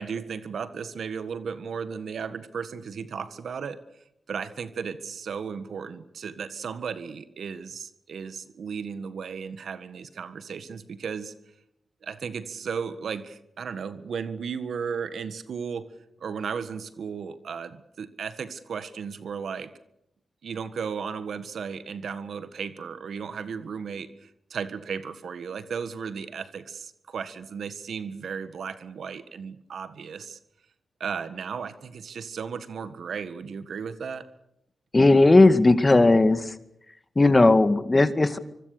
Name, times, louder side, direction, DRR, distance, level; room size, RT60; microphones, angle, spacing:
voice 1, 0.0-3.8 4.3-11.3 12.0-15.9 16.2-19.7 20.4-30.4 31.0-34.3, right 6 dB, 75° right, 13 dB, 1.6 m, -35 dB
voice 2, 34.9-36.5 37.2-38.4, left 2 dB, 30° left, 11 dB, 2.2 m, -17 dB
25.0 x 24.5 x 6.8 m, 0.80 s
supercardioid pair, 40°, 0 cm